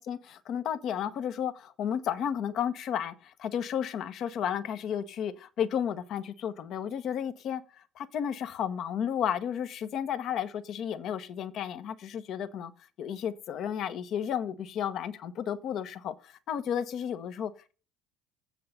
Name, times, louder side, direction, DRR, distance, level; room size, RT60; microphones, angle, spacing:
voice 1, 0.0-12.7 13.0-17.7, left 9 dB, 55° left, 1.2 m, -33 dB
7.8 x 6.5 x 6.6 m
hypercardioid pair, 70°, 0 cm